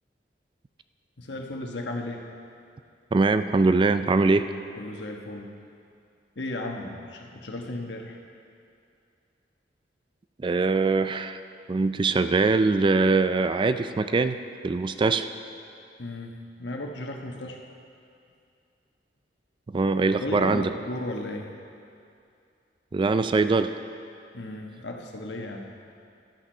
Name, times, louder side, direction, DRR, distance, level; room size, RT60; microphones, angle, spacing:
voice 1, 1.2-2.2 4.8-5.5 6.4-8.2 16.0-16.3 16.6-17.6 20.2-21.5 24.3-25.7, left 1 dB, 75° left, 2 dB, 1.2 m, -35 dB
voice 2, 3.1-4.5 10.4-11.4 11.7-14.4 14.6-15.3 19.7-20.7 22.9-23.7, right 3 dB, 30° right, 10 dB, 0.3 m, -22 dB
12.0 x 8.9 x 5.5 m, 2.5 s
head